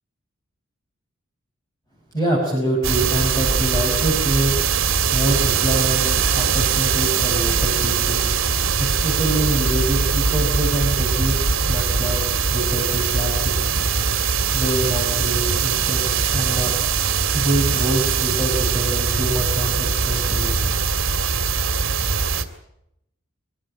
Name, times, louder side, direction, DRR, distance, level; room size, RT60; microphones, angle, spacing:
voice 1, 2.1-4.5 5.1-8.2 8.8-13.7 14.5-16.7 17.3-21.0, right 1 dB, 20° left, -2 dB, 5.6 m, -25 dB
sound 1, 2.8-22.4, right 5 dB, 80° right, 2.1 m, -21 dB
24.5 x 14.5 x 10.0 m, 0.82 s
head